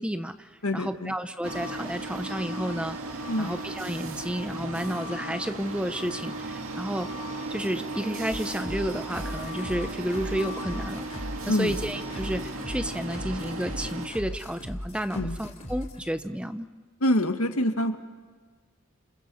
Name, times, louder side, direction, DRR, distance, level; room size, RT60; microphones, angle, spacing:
voice 1, 0.0-7.1 7.5-16.7, equal, 5° right, 10 dB, 0.7 m, -31 dB
voice 2, 0.6-1.1 3.3-3.5 11.5-11.7 15.1-15.4 17.0-18.0, left 1 dB, 85° left, 6 dB, 1.9 m, -25 dB
sound 1, 1.4-14.1, right 2 dB, 70° right, 2.2 m, -36 dB
sound 2, 8.3-16.0, left 1 dB, 30° left, 3.5 m, -38 dB
30.0 x 28.0 x 7.1 m, 1.4 s
head